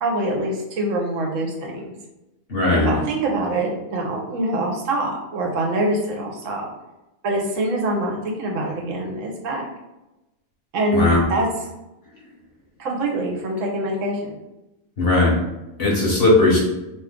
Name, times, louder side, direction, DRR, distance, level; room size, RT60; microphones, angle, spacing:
voice 1, 0.0-1.9 2.7-6.7 7.2-9.6 10.7-11.5 12.8-14.4, right 1 dB, 70° right, 0 dB, 0.9 m, -24 dB
voice 2, 2.5-3.0 10.9-11.2 15.0-15.3 15.8-16.6, left 2 dB, 50° left, -4 dB, 0.9 m, -17 dB
2.7 x 2.3 x 3.5 m, 0.98 s
omnidirectional pair, 1.4 m